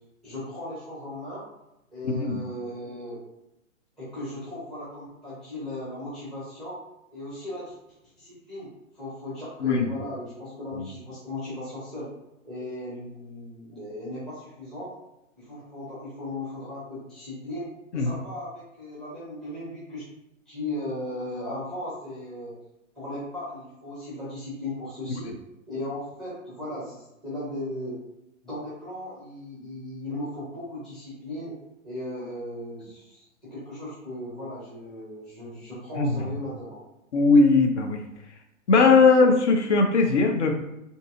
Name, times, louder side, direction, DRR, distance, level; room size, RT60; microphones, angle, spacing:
voice 1, 0.2-1.5 1.9-3.2 4.0-6.8 7.1-7.7 8.2-8.7 8.9-12.1 12.4-14.9 15.4-17.7 17.9-20.0 20.5-22.6 23.0-25.3 25.7-28.0 28.4-31.5 31.8-36.8 39.1-39.2, left 1 dB, ahead, -9 dB, 0.5 m, -37 dB
voice 2, 37.1-38.0 38.7-40.5, left 4 dB, 55° left, 3 dB, 0.6 m, -19 dB
2.6 x 2.6 x 2.4 m, 0.89 s
figure-of-eight pair, 120°, 41 cm